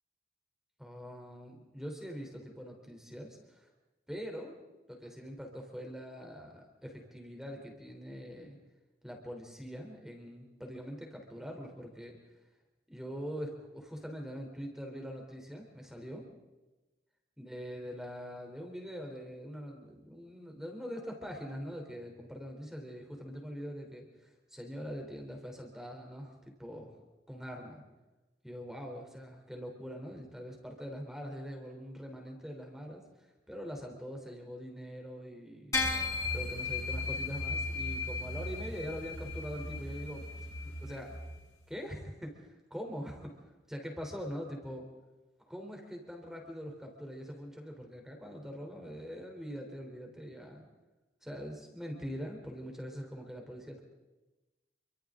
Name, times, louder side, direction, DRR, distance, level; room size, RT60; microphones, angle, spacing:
voice 1, 0.8-3.7 4.1-4.6 4.9-8.6 9.0-12.2 12.9-16.3 17.4-27.0 27.3-27.8 28.4-33.0 33.5-35.7 36.3-41.2 41.7-44.9 45.5-50.6 51.2-53.8, equal, 5° right, 2 dB, 3.6 m, -43 dB
sound 1, 35.7-41.3, left 3 dB, 20° left, 5.8 m, -36 dB
28.0 x 25.0 x 3.8 m, 1.1 s
head